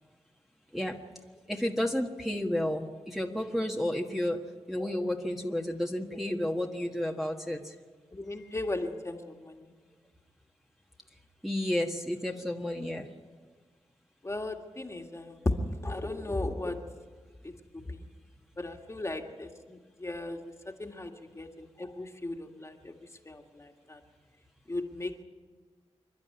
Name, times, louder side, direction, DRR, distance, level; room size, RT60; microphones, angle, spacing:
voice 1, 1.5-4.4 4.7-7.6 11.4-13.1, left 1 dB, ahead, 0 dB, 1.5 m, -31 dB
voice 2, 8.1-9.7 14.2-15.5 15.8-16.8 17.4-18.0 18.6-20.4 20.8-22.9 23.3-24.0 24.7-25.2, left 2 dB, 25° left, 4 dB, 1.9 m, -36 dB
27.5 x 11.5 x 9.6 m, 1.5 s
wide cardioid pair, 80°, 11 cm